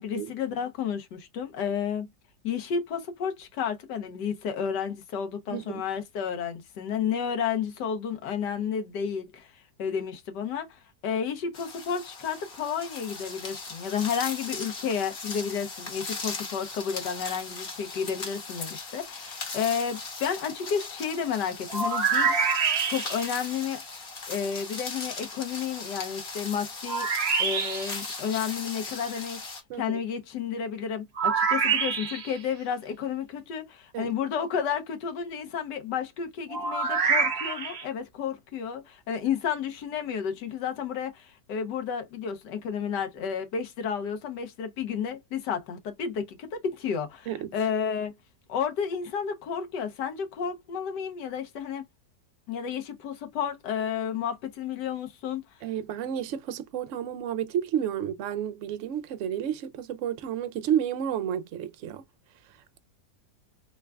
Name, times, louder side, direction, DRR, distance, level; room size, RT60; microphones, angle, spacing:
voice 1, 0.0-2.1 2.4-9.5 9.8-23.8 24.3-27.1 27.4-29.4 29.8-48.1 48.5-51.9 52.5-55.4, left 7 dB, 85° left, 1.5 m, -31 dB
voice 2, 5.5-5.8 29.7-30.0 33.9-34.1 47.3-47.5 55.6-62.0, right 9 dB, 70° right, 0.7 m, -31 dB
sound 1, 11.5-29.6, left 4 dB, 40° left, 1.0 m, -38 dB
sound 2, 21.7-23.3 26.9-28.0 31.2-32.4 36.5-37.8, right 5 dB, 45° right, 1.0 m, -26 dB
3.8 x 3.3 x 2.2 m
omnidirectional pair, 1.8 m